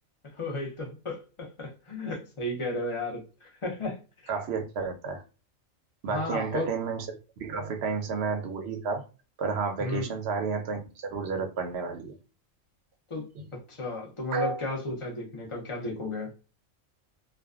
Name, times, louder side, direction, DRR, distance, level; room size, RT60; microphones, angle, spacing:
voice 1, 0.2-4.0 6.1-6.7 9.8-10.0 13.1-16.3, left 2 dB, 50° left, 0.4 m, -34 dB
voice 2, 4.3-5.2 6.0-7.1 7.4-9.0 9.4-10.8 11.1-12.2 13.4-13.5 14.3-14.6, right 5 dB, 65° right, 0.7 m, -31 dB
2.4 x 2.1 x 2.3 m
omnidirectional pair, 1.4 m